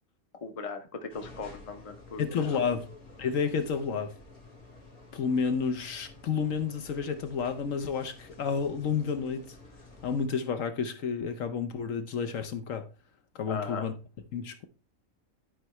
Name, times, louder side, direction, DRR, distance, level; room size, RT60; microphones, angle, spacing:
voice 1, 0.4-2.2 2.5-2.6 13.5-13.9, left 4 dB, 30° left, 0.8 m, -38 dB
sound 1, 1.1-10.3, left 2 dB, 90° left, 2.3 m, -51 dB
voice 2, 2.2-2.8 3.2-4.1 5.1-9.6 10.0-12.9 13.3-13.9 14.3-14.6, left 6 dB, 70° left, 1.1 m, -30 dB
11.0 x 4.7 x 3.0 m
omnidirectional pair, 1.5 m